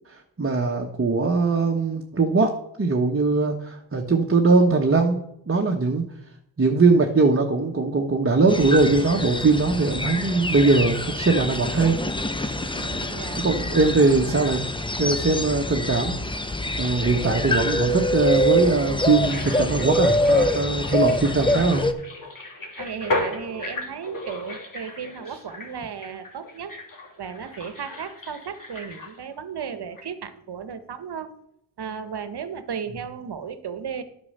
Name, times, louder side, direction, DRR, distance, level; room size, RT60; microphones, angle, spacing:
voice 1, 0.1-2.5 2.8-5.2 5.5-6.0 6.6-12.0 13.4-14.6 15.0-16.2 16.8-21.8, right 3 dB, 25° right, 2 dB, 1.3 m, -21 dB
sound 1, 8.5-21.9, left 1 dB, 10° left, 1.0 m, -25 dB
voice 2, 12.7-13.4 22.8-26.7 27.2-31.4 31.8-34.0, right 7 dB, 55° right, 11 dB, 1.3 m, -35 dB
sound 2, 19.1-29.7 30.0-30.1, left 2 dB, 40° left, 3.0 m, -35 dB
9.7 x 5.5 x 6.6 m, 0.76 s
supercardioid pair, 55°, 48 cm